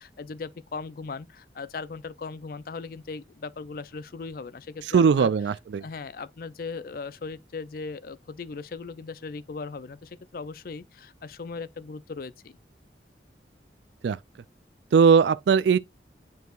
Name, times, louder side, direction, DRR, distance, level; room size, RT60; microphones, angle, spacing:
voice 1, 0.0-5.3 5.8-12.6, left 4 dB, 50° left, 0.4 m, -38 dB
voice 2, 4.9-5.8 14.0-14.2 14.9-15.8, right 6 dB, 75° right, 0.3 m, -19 dB
9.2 x 4.7 x 2.4 m
head